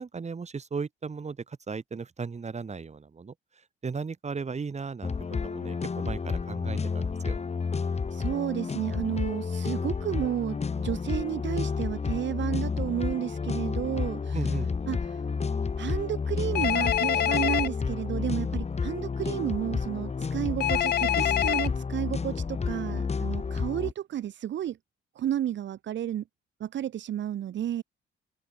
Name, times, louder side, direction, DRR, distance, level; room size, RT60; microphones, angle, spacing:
voice 1, 0.0-3.3 3.8-5.1 5.4-7.4 14.3-14.7, right 5 dB, 35° right, 5.7 m, -36 dB
sound 1, 5.0-23.9, left 5 dB, 35° left, 2.7 m, -31 dB
voice 2, 8.1-14.6 14.9-15.2 15.8-24.8 25.2-26.2 26.6-27.8, right 11 dB, 65° right, 1.9 m, -32 dB
Telephone, 16.5-17.7 20.6-21.7, left 11 dB, 55° left, 0.6 m, -25 dB
open air
cardioid pair, 90°, 20 cm